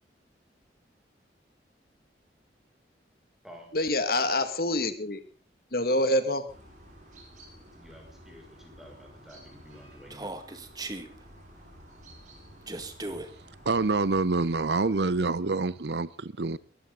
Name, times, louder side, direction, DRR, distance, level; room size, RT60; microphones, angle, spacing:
voice 1, 3.7-5.2 5.7-6.5, left 1 dB, 55° left, 2.0 m, -26 dB
sound 1, 6.5-15.3, equal, 45° right, 7.0 m, -52 dB
voice 2, 7.7-10.3, equal, ahead, 6.2 m, -50 dB
Human voice, 10.1-11.1 12.7-13.3, right 2 dB, 20° right, 2.0 m, -37 dB
voice 3, 13.7-16.6, right 3 dB, 75° right, 0.8 m, -26 dB
23.0 x 14.5 x 3.9 m
head